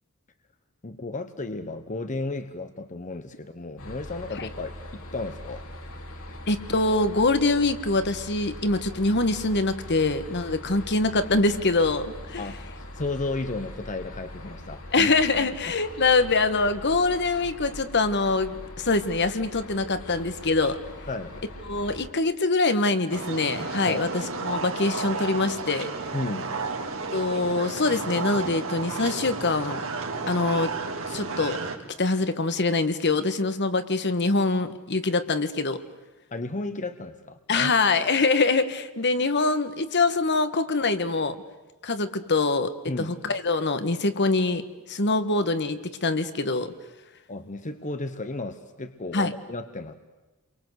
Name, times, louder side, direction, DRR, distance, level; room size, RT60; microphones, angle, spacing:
voice 1, 0.8-5.7 12.4-15.1 15.7-15.8 21.1-21.3 23.9-24.1 26.1-26.5 36.3-37.8 42.9-43.1 47.3-49.9, left 2 dB, 35° left, 9 dB, 1.2 m, -33 dB
sound 1, 3.8-22.1, left 1 dB, 75° left, 3.7 m, -41 dB
voice 2, 6.5-12.4 14.9-20.8 21.7-25.9 27.1-29.8 30.3-30.7 31.1-31.6 32.0-35.8 37.5-41.4 41.8-42.7 43.0-44.6 44.9-46.7 49.1-49.3, left 3 dB, 55° left, 11 dB, 1.5 m, -24 dB
sound 2, 23.1-31.8, right 4 dB, 65° right, 3.3 m, -32 dB
29.5 x 23.5 x 8.2 m, 1.1 s
head